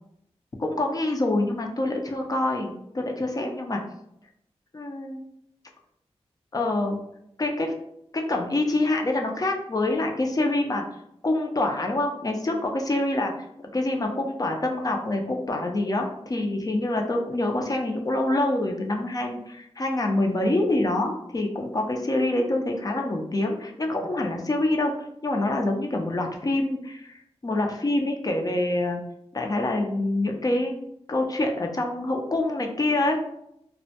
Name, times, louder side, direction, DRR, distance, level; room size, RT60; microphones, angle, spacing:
voice 1, 0.6-3.8 4.7-5.2 6.5-7.0 7.4-7.8 8.1-10.8 11.2-13.3 13.7-24.9 25.2-27.1 27.4-29.0 29.3-33.2, left 2 dB, 35° left, 2 dB, 0.5 m, -26 dB
2.1 x 2.1 x 2.8 m, 0.77 s
cardioid pair, 50°, 11 cm